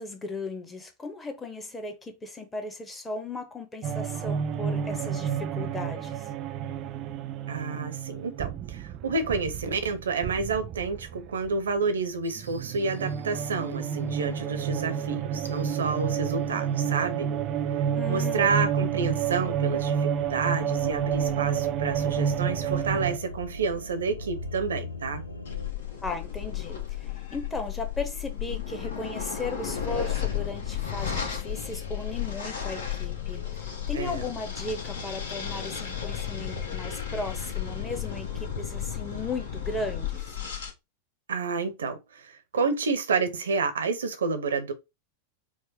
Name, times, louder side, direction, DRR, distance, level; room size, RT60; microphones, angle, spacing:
voice 1, 0.0-6.3 18.0-18.5 26.0-40.3, left 3 dB, 15° left, 0.9 m, -36 dB
sound 1, 3.8-12.0 12.3-23.2, right 8 dB, 35° right, 0.4 m, -30 dB
voice 2, 7.5-17.3 17.7-25.2 33.9-34.2 41.3-44.7, right 4 dB, 65° right, 0.7 m, -29 dB
sound 2, 12.2-13.5 15.4-25.7, left 1 dB, 85° left, 0.7 m, -42 dB
sound 3, 25.4-40.7, left 9 dB, 60° left, 1.1 m, -33 dB
4.7 x 2.1 x 4.1 m
figure-of-eight pair, 90°, 0 cm